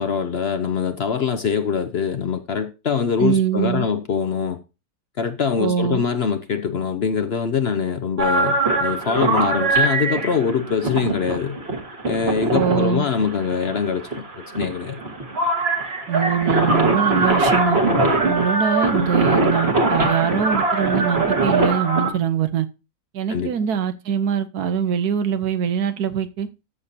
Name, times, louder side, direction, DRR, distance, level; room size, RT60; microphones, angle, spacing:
voice 1, 0.0-4.6 5.2-11.6 12.0-14.3 14.5-15.0 23.3-23.5, left 6 dB, 55° left, 0.8 m, -23 dB
voice 2, 3.2-3.8 5.6-6.0 12.5-13.0 16.1-17.8 18.2-22.7 23.1-26.5, right 8 dB, 75° right, 1.4 m, -23 dB
sound 1, 8.2-22.1, right 2 dB, 40° right, 2.0 m, -21 dB
13.5 x 6.7 x 2.8 m
omnidirectional pair, 1.7 m